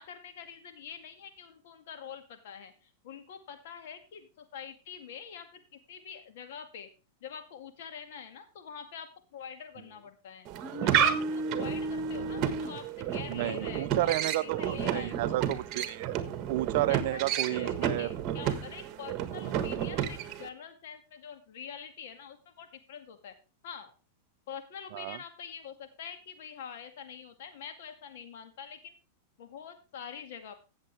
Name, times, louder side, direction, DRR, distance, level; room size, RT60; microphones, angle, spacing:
voice 1, 0.0-6.9 7.2-10.5 10.8-14.2 14.4-15.5 16.9-23.3 23.6-23.9 24.5-28.9 29.4-30.5, left 7 dB, 65° left, 2.1 m, -45 dB
sound 1, 10.5-20.5, right 8 dB, 40° right, 1.4 m, -31 dB
voice 2, 13.3-16.2 16.5-18.1 19.4-19.5 24.9-25.2, right 16 dB, 60° right, 0.5 m, -31 dB
15.5 x 7.4 x 3.4 m
hypercardioid pair, 120°, 0 cm